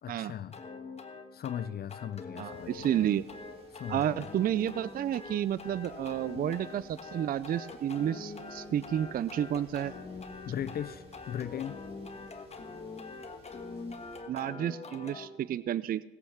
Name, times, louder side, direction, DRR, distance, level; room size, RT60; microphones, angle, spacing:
voice 1, 0.0-0.6 1.3-3.0 3.7-4.3 10.5-11.8, left 10 dB, 50° left, 15 dB, 0.5 m, -38 dB
sound 1, 0.5-15.3, left 4 dB, 30° left, 1.5 m, -44 dB
voice 2, 2.4-3.2 3.9-9.9 14.3-16.0, right 10 dB, 45° right, 19 dB, 0.4 m, -31 dB
sound 2, 2.5-14.2, right 2 dB, 30° right, 3.7 m, -54 dB
18.0 x 8.0 x 5.8 m, 1.1 s
cardioid pair, 90°, 20 cm